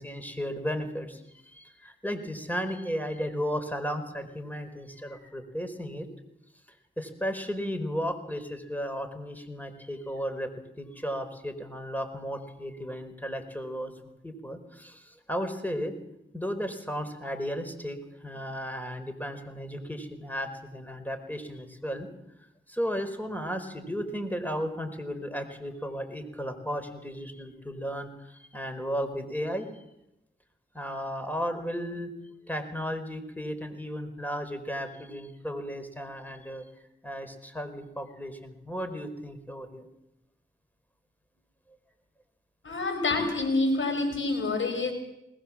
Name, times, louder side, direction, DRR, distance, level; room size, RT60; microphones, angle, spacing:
voice 1, 0.0-6.1 7.0-10.5 10.8-13.9 14.2-15.9 16.3-22.1 22.7-29.8 30.7-32.1 32.5-36.6 37.0-39.9, equal, 10° left, 8 dB, 4.7 m, -34 dB
voice 2, 42.6-44.9, left 3 dB, 75° left, 5 dB, 5.9 m, -27 dB
21.0 x 20.0 x 7.5 m, 0.88 s
cardioid pair, 45°, 21 cm